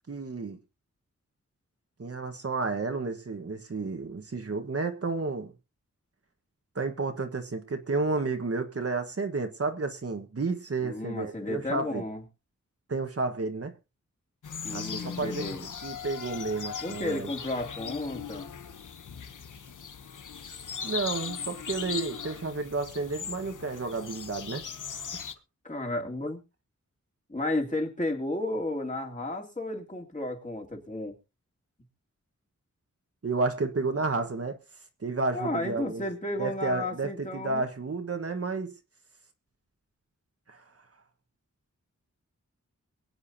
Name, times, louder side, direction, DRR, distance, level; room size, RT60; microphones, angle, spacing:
voice 1, 0.1-0.6 2.0-5.5 6.7-12.0 12.9-13.7 14.7-15.4 15.8-17.3 20.8-24.6 33.2-34.6 35.0-36.0 36.4-38.8 40.5-40.6, right 3 dB, 50° right, 6 dB, 1.5 m, -31 dB
voice 2, 10.8-12.2 14.6-15.6 16.8-18.5 25.6-26.4 27.3-31.2 35.3-37.6, left 1 dB, 25° left, 1 dB, 2.7 m, -33 dB
sound 1, 14.4-25.3, left 7 dB, 80° left, 1.0 m, -39 dB
23.5 x 8.1 x 2.8 m, 0.29 s
wide cardioid pair, 80°, 31 cm